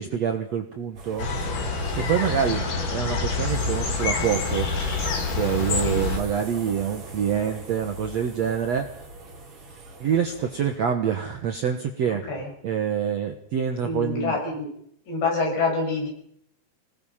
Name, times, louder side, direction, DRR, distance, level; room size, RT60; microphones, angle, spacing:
voice 1, 0.0-1.3 2.0-4.7 5.4-9.1 10.0-12.3 12.6-14.4, right 8 dB, 70° right, 5 dB, 1.7 m, -26 dB
sound 1, 0.9-10.8, right 1 dB, 40° right, 5.2 m, -40 dB
sound 2, 1.2-6.2, left 4 dB, 55° left, 4.4 m, -27 dB
voice 2, 13.8-14.7 15.1-16.1, left 3 dB, 80° left, 1 dB, 8.4 m, -26 dB
26.0 x 19.0 x 5.7 m, 0.70 s
omnidirectional pair, 4.9 m